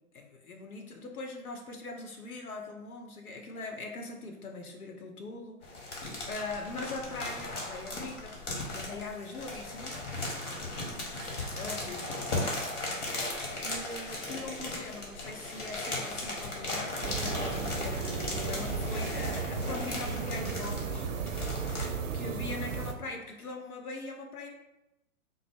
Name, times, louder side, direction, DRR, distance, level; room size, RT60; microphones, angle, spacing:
voice 1, 0.1-10.0 11.5-12.2 13.6-21.1 22.1-24.5, left 3 dB, 75° left, 3 dB, 0.8 m, -41 dB
sound 1, 5.6-21.9, left 2 dB, 55° left, 1.2 m, -37 dB
sound 2, 17.0-22.9, right 5 dB, 60° right, 0.6 m, -35 dB
3.7 x 2.0 x 3.5 m, 0.90 s
figure-of-eight pair, 115°, 44 cm